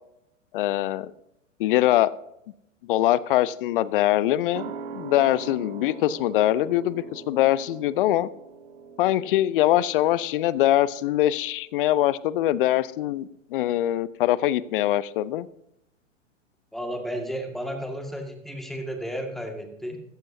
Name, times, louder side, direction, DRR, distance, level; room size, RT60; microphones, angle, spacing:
voice 1, 0.5-1.1 1.6-2.1 2.8-8.3 9.0-15.5, left 14 dB, 45° left, 19 dB, 0.6 m, -23 dB
sound 1, 4.5-11.6 11.9-12.0, right 6 dB, 45° right, 1.8 m, -42 dB
voice 2, 16.7-20.0, equal, ahead, 3 dB, 1.9 m, -33 dB
15.0 x 14.0 x 2.7 m, 0.80 s
figure-of-eight pair, 105°, 38 cm